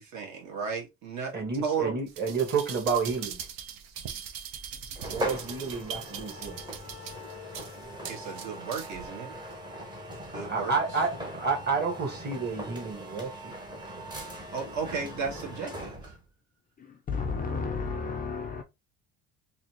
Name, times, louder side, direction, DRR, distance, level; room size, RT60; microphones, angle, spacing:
voice 1, 0.0-1.9 8.1-9.3 10.3-10.7 14.5-16.1, right 5 dB, 55° right, 1.6 m, -34 dB
voice 2, 1.3-3.4 5.1-6.6 10.4-13.5, right 4 dB, 30° right, 1.6 m, -30 dB
sound 1, 2.1-9.1 9.5-9.6, right 8 dB, 75° right, 0.9 m, -41 dB
sound 2, 4.9-16.2, equal, 10° right, 0.9 m, -40 dB
voice 3, 16.8-18.6, left 4 dB, 25° left, 0.4 m, -32 dB
4.0 x 2.8 x 2.9 m
cardioid pair, 170°, 34 cm